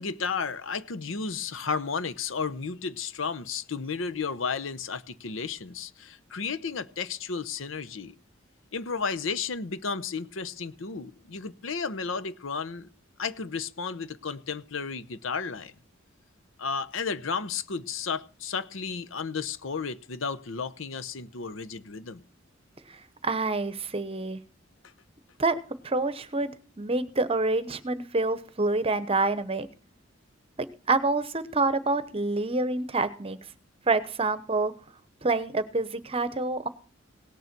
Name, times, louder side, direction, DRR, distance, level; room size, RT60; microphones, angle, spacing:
voice 1, 0.0-8.2 8.7-12.9 13.2-15.7 16.6-22.2, left 5 dB, 85° left, 12 dB, 0.8 m, -33 dB
voice 2, 22.9-24.4 25.4-26.5 26.8-29.7 30.6-33.4 33.9-34.7 35.2-36.7, right 3 dB, 30° right, 13 dB, 0.9 m, -27 dB
18.0 x 6.8 x 6.0 m, 0.41 s
head